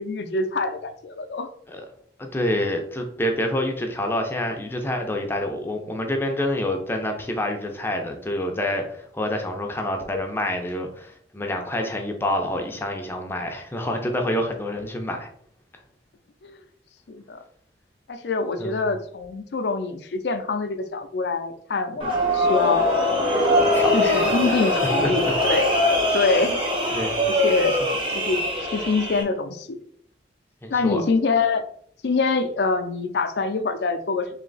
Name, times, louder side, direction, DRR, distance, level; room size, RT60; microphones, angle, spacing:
voice 1, 0.0-1.5 16.4-16.6 17.1-17.4 18.1-22.8 23.9-25.7 26.1-26.6 26.9-27.0 27.2-27.8 28.3-28.4 28.7-29.8 30.7-31.6 32.0-34.3, left 3 dB, 70° left, 7 dB, 0.5 m, -25 dB
voice 2, 2.2-15.3 18.6-18.9 23.7-24.6 25.0-25.1 26.9-27.2 30.6-31.0, left 1 dB, 15° left, 3 dB, 0.5 m, -27 dB
sound 1, 22.0-29.2, left 1 dB, 30° right, 0.8 m, -22 dB
3.2 x 2.8 x 3.9 m, 0.64 s
head